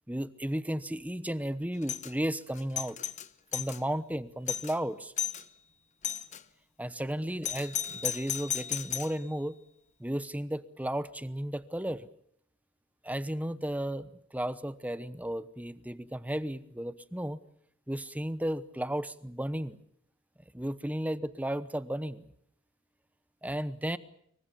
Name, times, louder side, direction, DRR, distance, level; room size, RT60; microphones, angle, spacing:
voice 1, 0.1-3.0 3.5-5.1 6.8-9.6 10.0-12.1 13.0-17.4 17.9-19.8 20.5-22.3 23.4-24.0, right 1 dB, 5° right, 15 dB, 0.9 m, -34 dB
Doorbell, 1.8-2.1 2.6-3.8 4.2-4.3 4.5-4.8 5.2-5.4 6.0-6.4 7.4-9.2, left 9 dB, 35° left, 0.9 m, -34 dB
25.5 x 23.5 x 7.0 m, 0.70 s
head